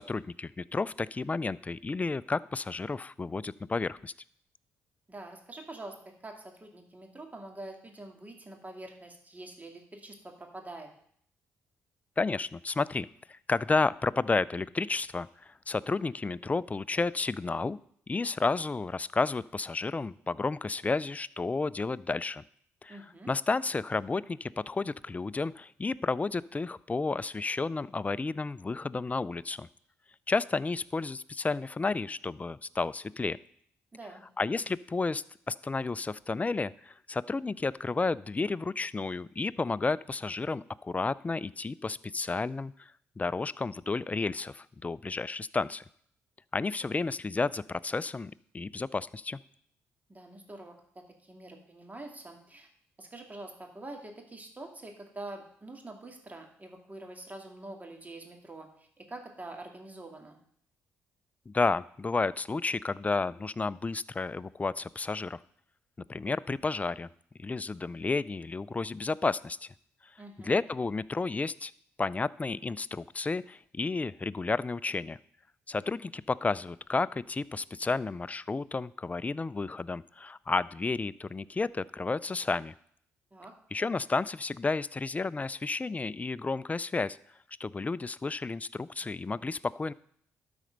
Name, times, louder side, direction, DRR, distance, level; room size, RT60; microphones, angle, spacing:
voice 1, 0.0-4.1 12.2-17.8 18.1-22.4 22.8-23.0 23.3-29.7 30.3-33.4 34.4-45.8 46.5-49.4 61.5-65.4 66.1-67.1 67.4-69.7 70.4-71.7 72.0-75.2 75.7-82.7 83.7-87.2 87.6-89.9, left 3 dB, 25° left, 20 dB, 0.4 m, -31 dB
voice 2, 5.1-5.9 6.2-10.9 22.9-23.3 33.9-34.2 50.1-52.7 53.0-60.4 70.2-70.5 83.3-83.5, right 2 dB, 25° right, 3 dB, 2.2 m, -45 dB
12.0 x 4.3 x 5.2 m, 0.65 s
hypercardioid pair, 50°, 6 cm